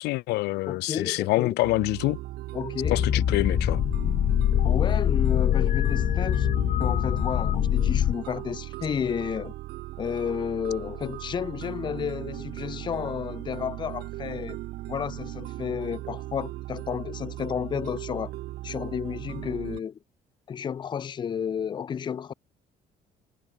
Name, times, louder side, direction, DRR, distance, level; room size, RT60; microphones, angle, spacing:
voice 1, 0.0-2.2 2.9-3.8, left 20 dB, 85° left, 0.5 m, -26 dB
voice 2, 0.7-1.6 2.5-3.0 4.6-9.5 10.0-14.6 14.9-18.3 18.6-20.0 20.5-22.3, left 7 dB, 25° left, 0.4 m, -32 dB
sound 1, 1.6-19.8, right 17 dB, 70° right, 0.5 m, -38 dB
sound 2, 2.8-8.1, left 11 dB, 50° left, 0.8 m, -24 dB
cardioid pair, 110°, 17 cm